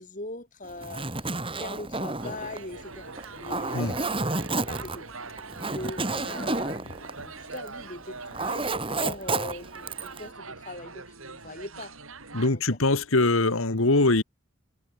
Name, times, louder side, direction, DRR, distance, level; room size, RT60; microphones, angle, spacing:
voice 1, 0.0-4.0 4.5-5.1 5.6-12.0 12.5-12.8, left 2 dB, 40° left, 3.8 m, -41 dB
Zipper (clothing), 0.7-7.8 8.1-10.2, right 2 dB, 25° right, 6.9 m, -31 dB
sound 1, 2.2-12.5, right 4 dB, 80° right, 6.3 m, -43 dB
voice 2, 12.3-14.2, left 2 dB, 80° left, 1.8 m, -22 dB
head